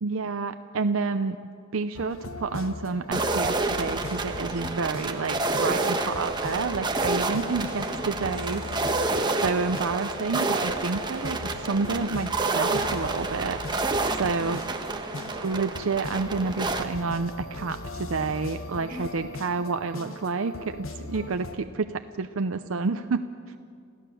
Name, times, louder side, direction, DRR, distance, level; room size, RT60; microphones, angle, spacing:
voice 1, 0.0-1.4 1.7-8.9 9.1-13.9 14.2-14.6 15.4-23.2, right 4 dB, 90° right, 8 dB, 0.6 m, -29 dB
sound 1, 1.9-21.6, left 2 dB, 90° left, 1.3 m, -39 dB
sound 2, 3.1-16.8, right 3 dB, 20° right, 1.2 m, -29 dB
voice 2, 7.4-8.3 13.9-15.7 18.9-19.6 21.2-21.3, equal, 50° right, 0 dB, 5.7 m, -44 dB
27.5 x 15.5 x 6.9 m, 2.3 s
head